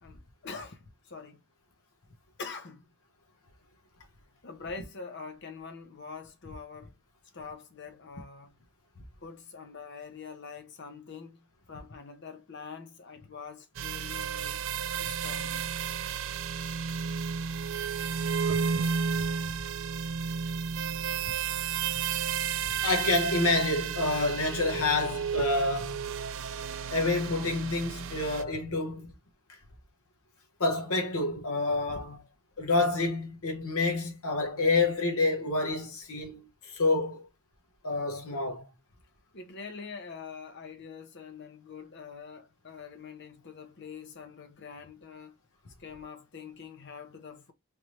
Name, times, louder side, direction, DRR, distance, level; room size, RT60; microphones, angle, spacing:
voice 1, 0.0-1.4 2.4-2.9 4.4-6.9 7.3-8.6 9.2-14.6 14.9-15.7 39.3-45.3 45.8-47.5, left 5 dB, 50° left, 0.7 m, -44 dB
sound 1, 13.7-28.4, right 7 dB, 60° right, 0.4 m, -32 dB
voice 2, 22.8-26.0 26.9-29.1 30.6-32.2 32.6-37.3 37.8-38.7, left 3 dB, 75° left, 1.0 m, -28 dB
3.3 x 3.1 x 3.0 m
head